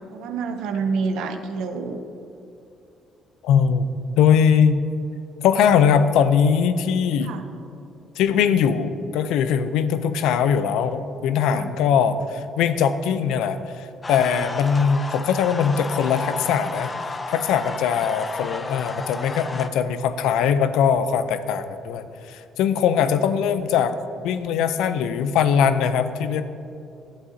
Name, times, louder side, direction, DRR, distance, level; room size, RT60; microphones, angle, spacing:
voice 1, 0.1-2.0 7.2-7.4 11.5-11.7, right 4 dB, 80° right, 8 dB, 0.6 m, -27 dB
voice 2, 3.4-3.9 4.2-4.8 5.4-7.3 8.2-16.9 17.3-23.9 24.2-26.4, left 7 dB, 85° left, 11 dB, 0.4 m, -21 dB
sound 1, 14.0-19.7, left 3 dB, 30° left, 0.6 m, -32 dB
11.5 x 7.9 x 2.7 m, 2.7 s
supercardioid pair, 75°, 0 cm